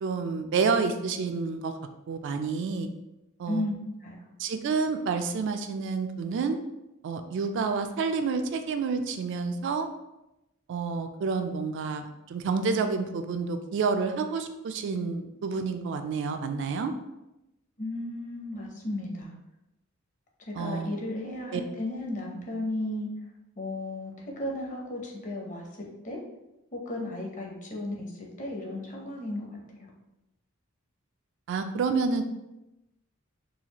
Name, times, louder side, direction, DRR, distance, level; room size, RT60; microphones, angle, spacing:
voice 1, 0.0-1.7 2.1-2.9 3.4-3.6 4.4-6.6 7.0-9.9 10.7-16.9 20.5-20.9 21.5-21.6 31.5-32.2, right 4 dB, 60° right, 7 dB, 0.3 m, -29 dB
voice 2, 3.5-4.2 17.8-19.3 20.5-23.1 23.6-25.7 26.0-26.2 26.7-29.5 29.8-29.9, left 1 dB, 35° left, -1 dB, 0.7 m, -34 dB
4.1 x 2.3 x 2.9 m, 0.92 s
head